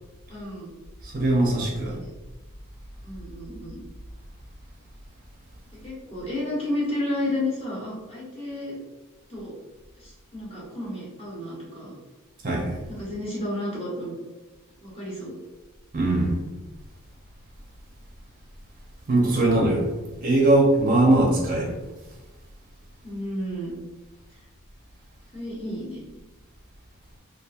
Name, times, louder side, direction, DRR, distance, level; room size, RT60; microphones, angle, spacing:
voice 1, 0.3-0.7 1.8-2.1 3.0-3.8 5.8-8.8 9.3-9.5 10.0-11.9 12.9-14.1 14.8-15.4 23.0-23.8 25.3-26.0, left 1 dB, 25° left, -6 dB, 1.0 m, -32 dB
voice 2, 1.0-2.0 12.4-12.8 15.9-16.4 19.1-19.9 20.2-21.7, right 2 dB, 40° right, -2 dB, 0.6 m, -21 dB
2.8 x 2.5 x 2.4 m, 1.1 s
head